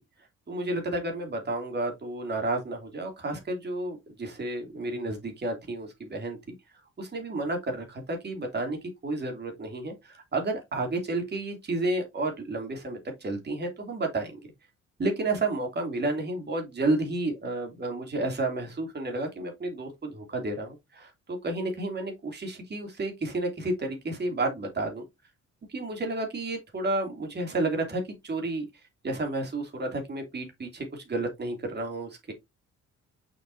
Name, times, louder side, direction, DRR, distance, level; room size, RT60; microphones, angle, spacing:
voice 1, 0.5-6.5 7.0-8.8 9.0-14.4 15.0-25.0 25.7-28.7 29.0-32.3, right 2 dB, 35° right, 2.9 m, -31 dB
6.5 x 5.6 x 2.7 m
cardioid pair, 90°, 30 cm